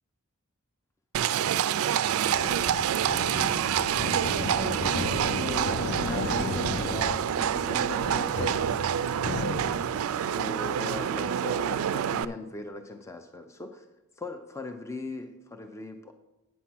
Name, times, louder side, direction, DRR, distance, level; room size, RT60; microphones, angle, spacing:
Livestock farm animals working animals, 1.1-12.2, right 9 dB, 65° right, 0.3 m, -27 dB
sound 1, 2.2-10.0, left 3 dB, 50° left, 0.7 m, -35 dB
voice 1, 2.2-2.7 4.4-8.7 10.1-13.9 14.2-16.1, left 3 dB, 15° left, 6 dB, 0.4 m, -39 dB
8.4 x 5.8 x 5.9 m, 1.0 s
head